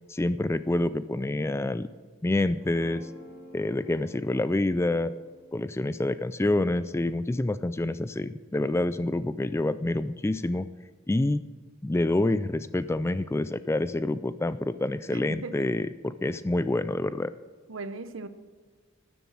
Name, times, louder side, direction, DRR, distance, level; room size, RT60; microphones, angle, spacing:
voice 1, 0.1-1.9 2.2-3.1 3.5-5.1 5.5-10.7 11.1-11.4 11.8-17.3, left 2 dB, 15° left, 14 dB, 0.3 m, -27 dB
Guitar, 2.5-8.8, equal, 10° right, 2.3 m, -52 dB
voice 2, 15.1-15.7 17.7-18.3, right 3 dB, 70° right, 11 dB, 0.9 m, -38 dB
13.0 x 7.2 x 7.4 m, 1.5 s
head